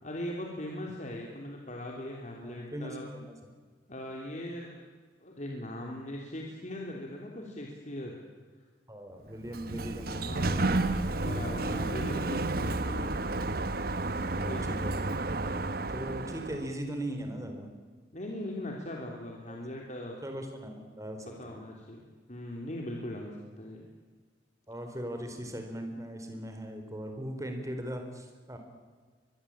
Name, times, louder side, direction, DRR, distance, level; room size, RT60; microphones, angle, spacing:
voice 1, 0.0-3.1 3.9-4.7 5.2-8.2 10.1-13.1 14.4-14.9 18.1-20.2 20.6-20.8 21.4-23.8, left 1 dB, 40° left, -1 dB, 3.3 m, -40 dB
voice 2, 2.4-3.5 8.9-10.9 14.1-15.0 15.3-15.5 15.9-17.7 19.5-19.7 20.2-21.6 24.7-28.6, right 1 dB, 20° right, 5 dB, 4.1 m, -39 dB
Sliding door, 9.3-16.7, right 2 dB, 55° right, 1.2 m, -31 dB
24.5 x 21.0 x 8.8 m, 1.5 s
head